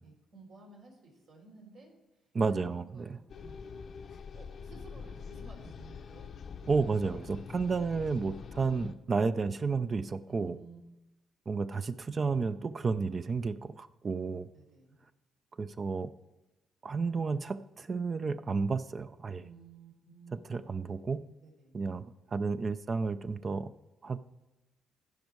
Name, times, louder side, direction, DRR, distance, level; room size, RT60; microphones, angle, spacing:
voice 1, 0.0-1.9 2.5-6.3 6.6-6.9 10.3-10.8 14.5-15.0 19.4-21.7, right 4 dB, 75° right, -1 dB, 3.5 m, -55 dB
voice 2, 2.3-3.0 6.7-10.6 11.5-14.5 15.6-16.1 16.8-19.4 20.5-21.2 21.7-22.0 22.3-23.7 24.0-24.2, right 4 dB, 40° right, 13 dB, 0.4 m, -31 dB
sound 1, 3.3-8.9, left 6 dB, 55° left, 0.6 m, -45 dB
15.5 x 5.3 x 4.6 m, 1.0 s
cardioid pair, 90°, 0 cm